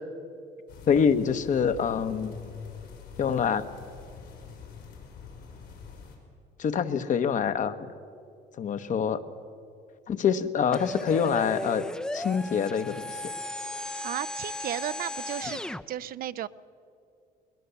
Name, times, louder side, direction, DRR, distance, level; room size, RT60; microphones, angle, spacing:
sound 1, 0.7-6.2, left 6 dB, 85° left, 5.3 m, -44 dB
voice 1, 0.9-2.4 3.2-3.6 6.6-7.9 8.6-9.2 10.1-11.8 12.1-13.2, left 7 dB, 50° left, 10 dB, 1.1 m, -25 dB
sound 2, 10.7-15.8, left 1 dB, 5° left, 0.5 m, -35 dB
voice 2, 14.0-15.6 15.9-16.5, right 12 dB, 60° right, 15 dB, 0.6 m, -34 dB
21.5 x 20.0 x 6.9 m, 2.5 s
cardioid pair, 110°, 17 cm